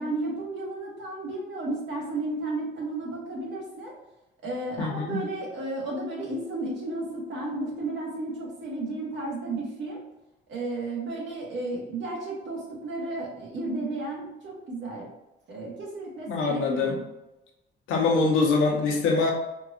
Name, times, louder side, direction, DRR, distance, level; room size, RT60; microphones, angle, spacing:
voice 1, 0.0-3.9 4.4-10.0 10.5-15.1 15.5-17.0, right 2 dB, 65° right, -3 dB, 1.4 m, -33 dB
voice 2, 4.8-5.2 16.3-17.0 17.9-19.3, left 4 dB, 85° left, 0 dB, 0.8 m, -24 dB
4.6 x 2.4 x 2.5 m, 0.94 s
cardioid pair, 90°, 20 cm